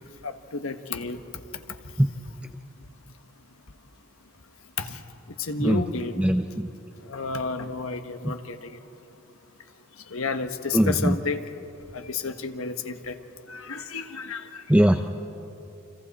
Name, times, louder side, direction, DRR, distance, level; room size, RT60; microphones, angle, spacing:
voice 1, 0.2-1.2 4.8-5.0 5.4-6.2 7.0-8.8 10.1-11.4 11.9-13.2 13.5-14.6, left 4 dB, 75° left, 7 dB, 1.3 m, -31 dB
voice 2, 6.2-6.7 8.2-8.3 10.7-11.2 14.7-15.1, equal, 5° right, 6 dB, 0.5 m, -20 dB
29.5 x 26.5 x 4.2 m, 2.8 s
head